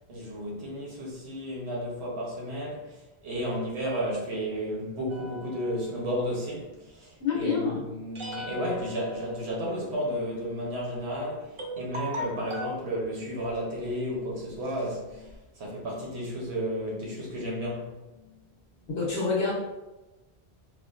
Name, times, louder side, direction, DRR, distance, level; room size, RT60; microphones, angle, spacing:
voice 1, 0.1-17.9, equal, 85° right, -3 dB, 1.2 m, -33 dB
sound 1, 5.1-6.4 8.1-9.9 10.9-11.0 11.6-12.8 13.5-13.8 14.3-14.4 14.6-15.3, left 1 dB, 40° right, 0.5 m, -39 dB
voice 2, 7.2-7.8 18.9-19.5, left 5 dB, 70° left, -6 dB, 1.3 m, -27 dB
4.6 x 2.2 x 2.5 m, 1.1 s
omnidirectional pair, 1.1 m